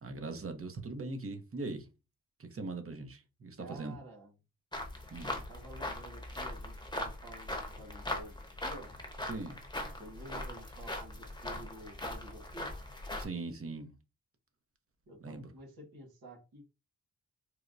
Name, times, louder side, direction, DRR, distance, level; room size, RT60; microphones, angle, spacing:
voice 1, 0.0-1.9 2.4-4.0 5.1-5.4 9.2-9.6 13.2-13.9 15.2-15.5, right 3 dB, 40° right, 0.9 m, -40 dB
voice 2, 3.6-4.3 5.3-8.9 10.0-12.7 15.1-16.6, right 1 dB, 90° right, 1.5 m, -50 dB
sound 1, 4.7-13.2, left 1 dB, 10° left, 0.9 m, -40 dB
4.4 x 2.2 x 2.6 m
cardioid pair, 70°, 35 cm